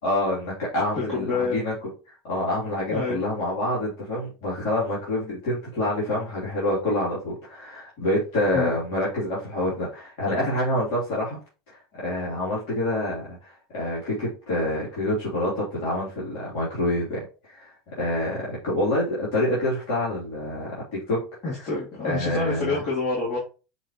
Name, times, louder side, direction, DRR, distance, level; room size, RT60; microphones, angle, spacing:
voice 1, 0.0-11.4 11.7-21.2 22.0-22.8, left 1 dB, 70° left, -7 dB, 3.3 m, -27 dB
voice 2, 0.9-1.6 2.9-3.2 8.5-8.8 21.4-23.4, left 3 dB, 50° left, -7 dB, 3.0 m, -27 dB
6.8 x 4.5 x 3.1 m, 0.33 s
hypercardioid pair, 95°, 0 cm